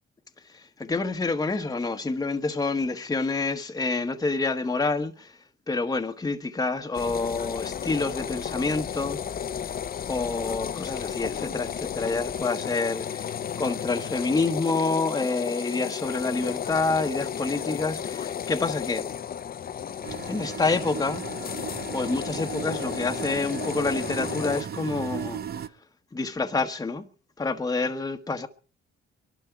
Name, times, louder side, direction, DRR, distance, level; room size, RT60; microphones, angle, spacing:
voice 1, 0.5-5.4 5.7-9.2 9.6-9.7 10.1-19.1 20.3-21.2 21.9-25.6 26.1-27.1 27.4-28.5, left 3 dB, 20° left, 1.1 m, -28 dB
sound 1, 6.9-24.6, left 8 dB, 50° left, 0.8 m, -33 dB
sound 2, 20.0-25.7, right 8 dB, 55° right, 0.8 m, -36 dB
22.5 x 12.0 x 4.6 m
cardioid pair, 90°, 20 cm